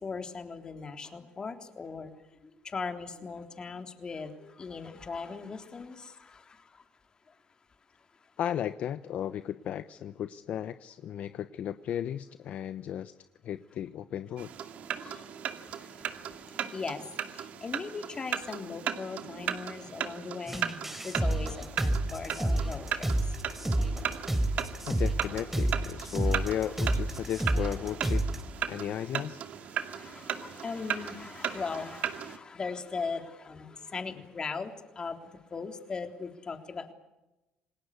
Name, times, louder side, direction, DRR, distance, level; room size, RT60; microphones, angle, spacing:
voice 1, 0.0-2.1 2.7-6.4 15.0-15.2 16.1-16.2 16.7-17.0 17.3-20.7 21.0-23.1 26.2-26.5 29.7-35.2 35.5-36.9, left 4 dB, 30° left, 6 dB, 3.6 m, -39 dB
voice 2, 8.4-13.1 13.4-14.5 24.9-28.2 28.7-29.4, left 10 dB, 60° left, 12 dB, 1.0 m, -35 dB
sound 1, 14.4-32.4, right 9 dB, 60° right, 2.4 m, -37 dB
sound 2, 20.5-28.4, right 1 dB, 10° right, 3.8 m, -30 dB
28.5 x 19.0 x 8.4 m, 0.99 s
cardioid pair, 105°, 3 cm